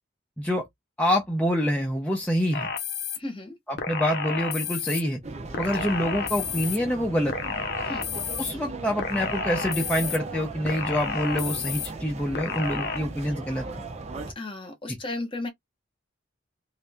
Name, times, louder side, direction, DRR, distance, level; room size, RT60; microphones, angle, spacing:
voice 1, 1.0-2.7 3.7-5.2 5.6-7.4 8.4-13.7 14.9-15.0, equal, 5° left, 0.7 m, -26 dB
sound 1, 2.5-3.2 3.8-5.0 5.5-6.8 7.3-8.5 9.0-10.2 10.7-11.9 12.3-13.0, left 6 dB, 55° left, 0.8 m, -31 dB
voice 2, 3.2-3.5 7.8-8.0 14.4-15.5, left 2 dB, 25° left, 1.1 m, -34 dB
sound 2, 5.2-14.3, right 3 dB, 35° right, 0.8 m, -37 dB
3.2 x 2.7 x 3.5 m
head